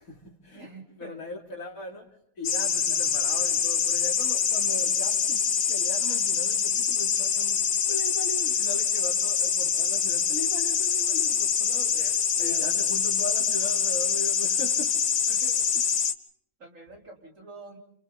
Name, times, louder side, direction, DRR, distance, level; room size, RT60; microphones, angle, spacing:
voice 1, 0.0-0.7 1.0-2.1 2.4-15.1 15.7-15.9, left 2 dB, 85° left, 3.7 m, -39 dB
voice 2, 0.5-1.2 2.9-3.4 11.9-12.9 15.3-15.7 16.6-17.8, right 2 dB, 65° right, 4.5 m, -47 dB
sound 1, 2.4-16.1, left 7 dB, 60° left, 1.3 m, -25 dB
29.5 x 28.5 x 4.1 m
omnidirectional pair, 1.4 m